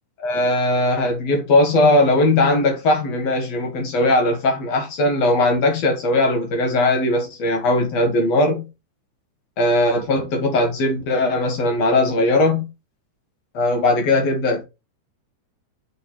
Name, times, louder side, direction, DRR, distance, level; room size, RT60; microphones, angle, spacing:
voice 1, 0.2-8.6 9.6-12.7 13.5-14.6, left 2 dB, 60° left, 2.4 m, -19 dB
6.9 x 4.0 x 4.2 m
omnidirectional pair, 3.7 m